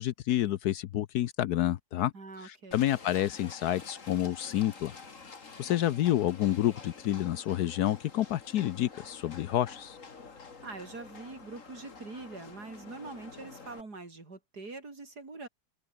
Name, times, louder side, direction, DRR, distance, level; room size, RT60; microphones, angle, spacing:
voice 1, 0.0-2.1 2.4-4.9 5.6-10.0, left 13 dB, 75° left, 1.2 m, -29 dB
voice 2, 2.1-2.8 5.7-6.2 10.6-15.5, right 3 dB, 70° right, 4.7 m, -44 dB
Livestock farm animals working animals, 2.7-13.8, left 4 dB, 50° left, 2.6 m, -49 dB
omnidirectional pair, 1.8 m